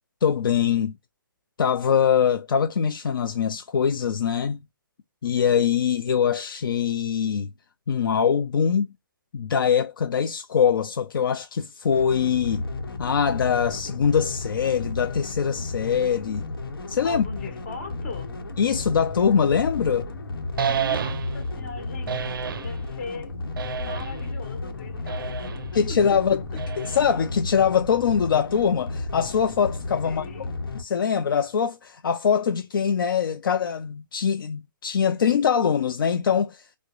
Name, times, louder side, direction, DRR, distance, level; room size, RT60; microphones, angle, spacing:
voice 1, 0.2-0.9 1.6-4.6 5.2-7.5 7.9-8.9 9.3-12.6 13.0-16.4 16.9-17.2 18.6-20.1 25.7-26.4 26.8-30.2 30.7-36.7, left 7 dB, 70° left, 0.4 m, -23 dB
sound 1, 11.9-30.8, left 3 dB, 90° left, 0.9 m, -33 dB
voice 2, 17.0-18.3 20.6-23.3 23.8-25.5 25.9-26.0 30.0-30.5, left 4 dB, 40° left, 1.5 m, -39 dB
sound 2, 20.6-21.5 22.1-22.8 23.6-24.3 25.1-25.7 26.6-27.3, right 7 dB, 70° right, 0.4 m, -30 dB
4.4 x 2.0 x 2.4 m
hypercardioid pair, 165°, 12 cm